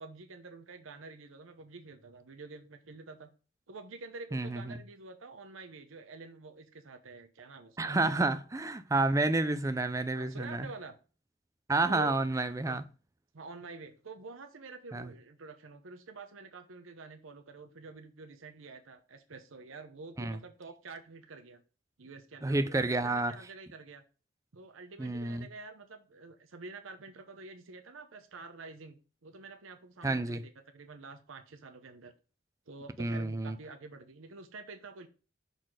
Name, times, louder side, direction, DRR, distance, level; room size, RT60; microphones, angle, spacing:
voice 1, 0.0-3.3 3.7-8.3 10.1-10.9 11.9-12.2 12.6-12.8 13.3-21.6 22.0-24.0 24.5-32.1 32.7-35.1, right 3 dB, 85° right, 0.8 m, -48 dB
voice 2, 4.3-4.7 7.8-10.7 11.7-12.8 14.9-15.1 20.2-20.4 22.4-23.3 25.0-25.5 30.0-30.4 33.0-33.6, right 2 dB, 15° right, 0.4 m, -30 dB
6.4 x 4.1 x 4.8 m
head